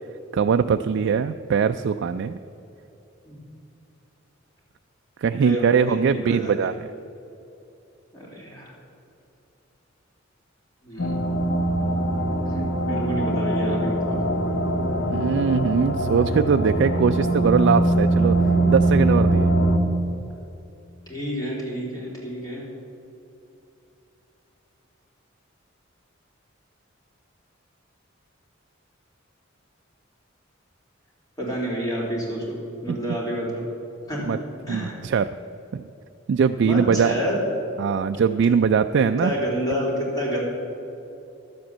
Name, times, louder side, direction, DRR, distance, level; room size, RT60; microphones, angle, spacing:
voice 1, 0.3-2.4 5.2-6.7 15.1-18.4 18.7-19.5 32.9-33.0 34.3-34.4 34.7-35.3 35.7-35.8 36.3-37.2 37.8-39.3, right 6 dB, 60° right, 8 dB, 0.3 m, -21 dB
voice 2, 5.3-6.7 8.1-8.7 10.8-11.9 12.5-14.2 21.1-22.7 31.4-33.7 34.1-34.4 34.7-35.0 36.6-37.4 39.2-40.4, equal, 20° left, -4 dB, 3.4 m, -29 dB
sound 1, 11.0-19.8, right 1 dB, 75° left, 1.2 m, -22 dB
12.0 x 7.8 x 7.3 m, 2.8 s
head